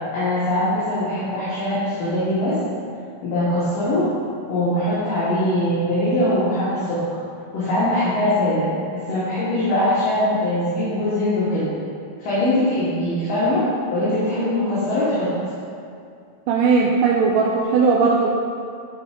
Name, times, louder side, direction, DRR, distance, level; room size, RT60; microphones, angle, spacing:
voice 1, 0.1-2.6 3.2-4.0 4.5-7.0 7.5-11.6 12.2-13.6 13.9-15.3, left 1 dB, 70° left, -12 dB, 3.4 m, -21 dB
voice 2, 16.5-18.3, right 4 dB, 80° right, -1 dB, 2.0 m, -18 dB
12.0 x 4.9 x 3.8 m, 2.4 s
omnidirectional pair, 4.2 m